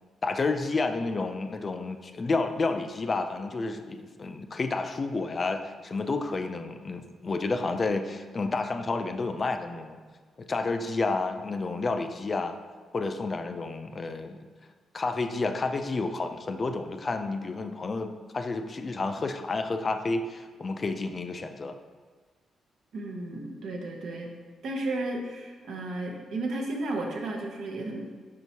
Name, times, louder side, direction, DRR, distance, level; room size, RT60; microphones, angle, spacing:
voice 1, 0.2-10.0 10.4-12.5 12.9-14.4 14.9-21.8, left 3 dB, 40° left, 7 dB, 0.3 m, -30 dB
voice 2, 22.9-24.3 24.6-28.1, right 2 dB, 75° right, 1 dB, 0.7 m, -33 dB
4.6 x 4.2 x 2.8 m, 1.4 s
cardioid pair, 70°, 0 cm